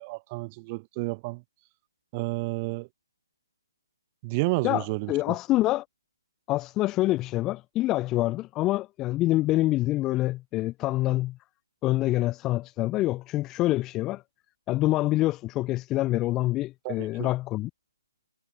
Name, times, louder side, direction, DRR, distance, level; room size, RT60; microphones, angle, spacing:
voice 1, 0.0-1.4 2.1-2.9 4.2-5.1 16.8-17.3, right 26 dB, 20° right, 1.8 m, -30 dB
voice 2, 4.6-5.8 6.5-11.4 11.8-14.2 14.7-17.7, left 17 dB, 10° left, 0.6 m, -26 dB
hypercardioid pair, 165°, 2 cm